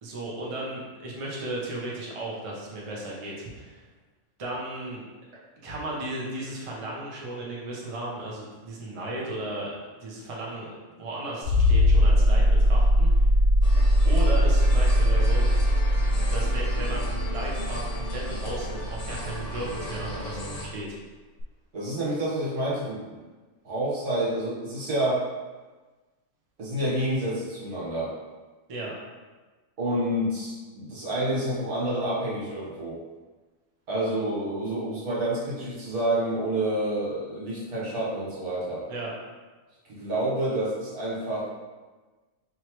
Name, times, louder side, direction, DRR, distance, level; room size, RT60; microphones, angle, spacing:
voice 1, 0.0-3.8 4.4-5.0 5.6-9.7 10.0-10.7 11.0-13.2 14.0-15.4 16.3-21.0 28.7-28.9 38.9-39.1, right 2 dB, 30° right, -4 dB, 0.6 m, -35 dB
sound 1, 11.4-19.9 21.4-21.5, equal, 85° left, 1.1 m, -21 dB
sound 2, 13.6-20.7, left 1 dB, 45° left, 0.5 m, -37 dB
voice 2, 21.7-23.2 23.6-25.3 26.6-28.1 29.8-33.0 33.9-38.8 39.9-41.5, right 1 dB, 75° right, -7 dB, 1.9 m, -28 dB
4.6 x 3.2 x 3.1 m, 1.3 s
omnidirectional pair, 1.6 m